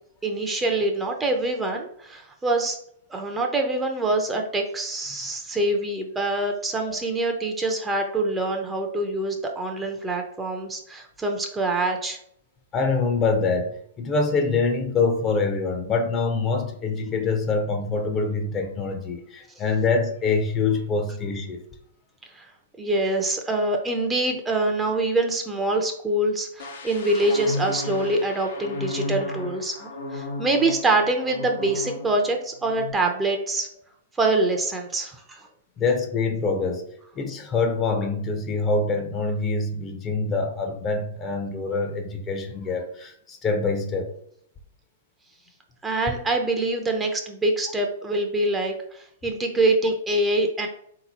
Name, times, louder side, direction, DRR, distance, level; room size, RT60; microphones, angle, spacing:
voice 1, 0.2-2.8 3.1-12.2 22.3-22.5 22.8-33.7 34.2-35.5 45.8-50.7, right 2 dB, 15° right, 3 dB, 0.6 m, -25 dB
voice 2, 12.7-13.7 14.0-21.6 23.5-23.6 35.8-36.8 37.1-44.1, left 4 dB, 25° left, 4 dB, 0.7 m, -25 dB
sound 1, 26.6-32.3 32.6-32.9, left 2 dB, 70° left, 0.9 m, -34 dB
3.9 x 2.9 x 4.1 m, 0.68 s
figure-of-eight pair, 110°, 0 cm